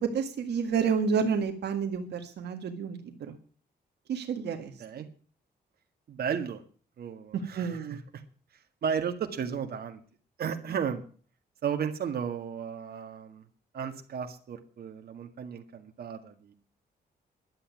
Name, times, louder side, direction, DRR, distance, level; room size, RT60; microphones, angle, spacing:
voice 1, 0.0-3.4 4.1-4.7 5.0-5.1 7.5-8.0, right 6 dB, 85° right, 5 dB, 1.7 m, -30 dB
voice 2, 6.1-6.6 7.0-8.0 8.8-10.0 10.4-11.0 11.6-13.4 13.7-16.5, right 7 dB, 65° right, 5 dB, 1.9 m, -34 dB
11.5 x 8.1 x 9.5 m, 0.42 s
cardioid pair, 115°, 17 cm